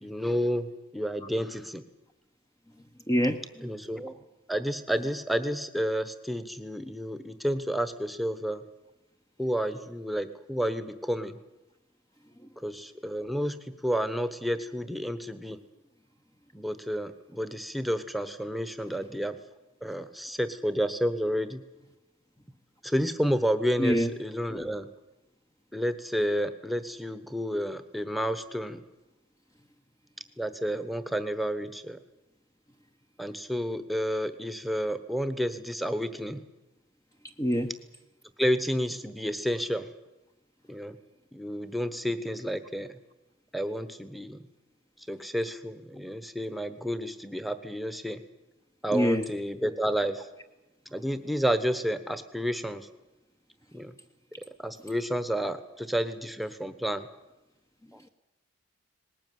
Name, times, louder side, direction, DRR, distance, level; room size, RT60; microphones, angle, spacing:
voice 1, 0.0-1.8 3.6-4.1 4.5-8.6 9.4-11.4 12.6-15.6 16.5-19.4 19.8-21.6 22.8-24.9 25.7-28.8 30.4-32.0 33.2-36.4 38.4-39.9 40.7-41.0 41.3-42.9 43.5-44.4 45.1-48.2 48.8-50.3 50.9-52.9 53.7-53.9 54.6-57.1 57.9-58.0, equal, ahead, 11 dB, 1.1 m, -30 dB
voice 2, 3.1-3.4 23.8-24.1 37.4-37.7 48.9-49.2, equal, 15° left, 5 dB, 0.8 m, -24 dB
19.5 x 18.5 x 9.4 m, 1.0 s
head